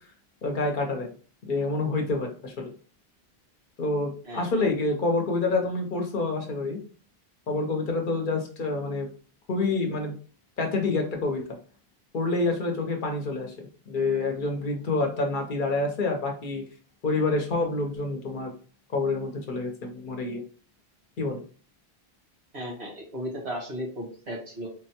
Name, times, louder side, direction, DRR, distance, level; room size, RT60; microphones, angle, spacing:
voice 1, 0.4-1.1 1.5-2.7 3.8-6.8 7.5-9.1 9.5-10.2 10.6-11.4 12.1-13.5 13.9-16.6 17.0-18.5 18.9-20.4 21.2-21.4, left 3 dB, 55° left, 3 dB, 0.8 m, -27 dB
voice 2, 4.2-4.8 22.5-24.7, equal, 90° right, -1 dB, 1.5 m, -35 dB
3.7 x 2.1 x 2.8 m, 0.40 s
omnidirectional pair, 1.1 m